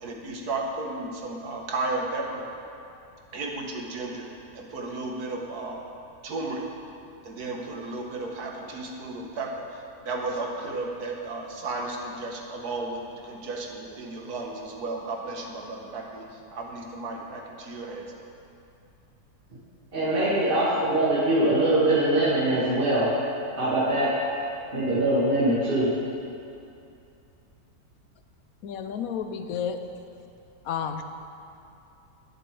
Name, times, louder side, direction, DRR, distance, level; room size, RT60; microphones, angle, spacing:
voice 1, 0.0-2.5 3.3-5.8 6.2-6.7 7.2-18.1, right 2 dB, 65° right, 0 dB, 1.8 m, -34 dB
voice 2, 19.9-23.1 23.6-24.1 24.7-25.9, right 1 dB, 30° right, -10 dB, 2.3 m, -22 dB
voice 3, 28.6-29.8 30.6-31.1, left 7 dB, 65° left, 7 dB, 1.0 m, -31 dB
19.5 x 7.6 x 3.3 m, 2.7 s
omnidirectional pair, 1.8 m